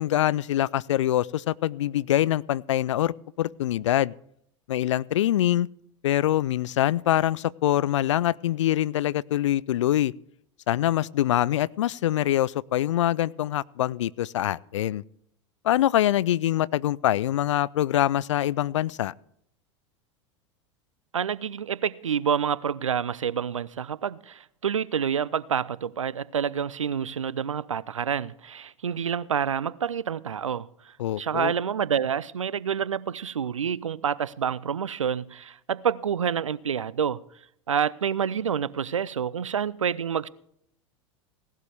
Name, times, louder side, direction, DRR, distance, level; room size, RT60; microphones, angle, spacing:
voice 1, 0.0-4.1 4.7-5.7 6.0-10.1 10.7-15.0 15.6-19.1 31.0-31.5, left 13 dB, 70° left, 0.4 m, -24 dB
voice 2, 21.1-37.2 37.7-40.3, right 8 dB, 85° right, 0.5 m, -28 dB
17.5 x 12.0 x 3.5 m
figure-of-eight pair, 85°, 16 cm